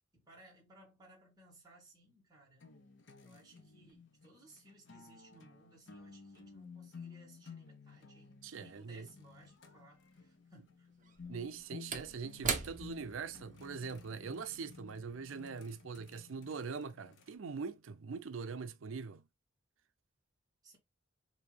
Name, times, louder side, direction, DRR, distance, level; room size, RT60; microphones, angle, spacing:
voice 1, 0.1-2.7 3.2-10.9 20.6-20.8, right 2 dB, 20° right, 1.8 m, -61 dB
sound 1, 2.6-17.4, left 5 dB, 65° left, 0.7 m, -55 dB
voice 2, 8.4-9.1 11.3-19.2, right 5 dB, 80° right, 0.5 m, -42 dB
Slam / Wood, 9.5-9.6 11.0-15.7 16.0-16.2, right 6 dB, 40° right, 0.8 m, -42 dB
4.8 x 2.7 x 3.3 m
head